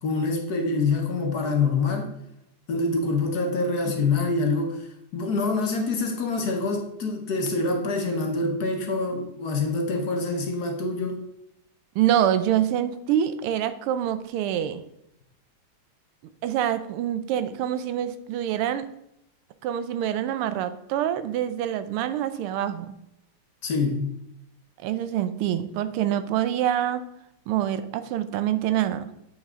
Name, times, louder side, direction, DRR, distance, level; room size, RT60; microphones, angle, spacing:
voice 1, 0.0-2.1 2.7-11.2 23.6-24.1, left 3 dB, 55° left, 3 dB, 1.3 m, -26 dB
voice 2, 12.0-14.8 16.4-18.8 19.6-23.0 24.8-27.0 27.5-29.1, right 11 dB, 85° right, 12 dB, 1.5 m, -26 dB
8.0 x 5.3 x 3.6 m, 0.80 s
omnidirectional pair, 2.4 m